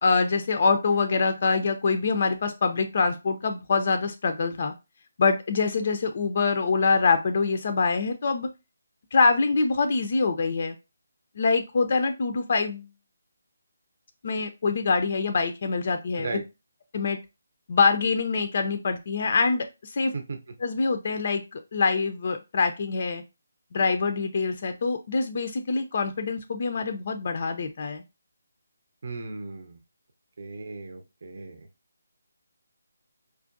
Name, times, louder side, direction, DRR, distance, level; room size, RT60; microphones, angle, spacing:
voice 1, 0.0-4.7 5.2-8.5 9.1-10.8 11.4-12.9 14.2-16.3 16.9-17.2 17.7-20.1 20.6-23.2 23.7-28.0, left 4 dB, 50° left, 7 dB, 0.4 m, -25 dB
voice 2, 29.0-29.8 30.4-31.6, right 3 dB, 55° right, 4 dB, 0.6 m, -36 dB
4.5 x 2.5 x 2.5 m, 0.26 s
figure-of-eight pair, 155°, 0 cm